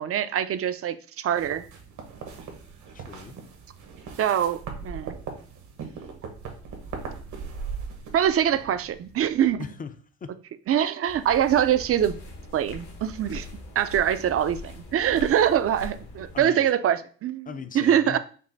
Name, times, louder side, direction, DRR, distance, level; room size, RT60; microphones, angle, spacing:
voice 1, 0.0-1.6 4.2-5.2 8.1-9.6 10.7-12.2 12.5-13.5 13.8-17.5 17.7-18.2, right 10 dB, 50° right, 0.5 m, -24 dB
sound 1, 1.4-9.5, right 5 dB, 75° right, 1.2 m, -39 dB
voice 2, 2.9-3.4 9.6-10.4 14.1-14.2 15.2-15.4 16.3-16.7 17.5-18.2, left 6 dB, 30° left, 0.5 m, -39 dB
sound 2, 11.1-16.4, left 2 dB, 75° left, 1.3 m, -41 dB
5.3 x 2.1 x 4.0 m
cardioid pair, 90°, 30 cm